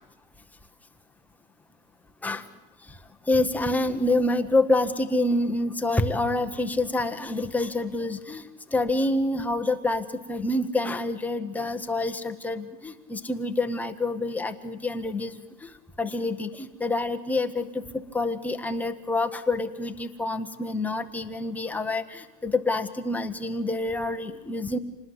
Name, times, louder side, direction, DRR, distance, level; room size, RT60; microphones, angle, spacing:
voice 1, 3.3-15.7 16.0-24.8, left 2 dB, 5° left, 6 dB, 0.8 m, -27 dB
27.0 x 20.0 x 7.7 m, 1.0 s
supercardioid pair, 150°, 46 cm